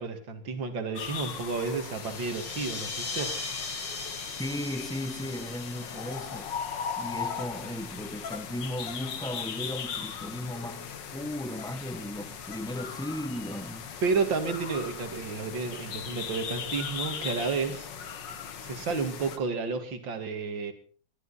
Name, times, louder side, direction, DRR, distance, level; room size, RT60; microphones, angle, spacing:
voice 1, 0.0-3.3 14.0-17.9 18.6-20.7, right 4 dB, 70° right, 2.8 m, -31 dB
sound 1, 1.0-19.4, left 7 dB, 65° left, 2.0 m, -38 dB
sound 2, 1.7-7.8, left 3 dB, 45° left, 2.5 m, -39 dB
voice 2, 4.4-6.5 7.0-13.9, left 1 dB, 5° left, 0.6 m, -36 dB
21.5 x 13.0 x 4.2 m
omnidirectional pair, 2.1 m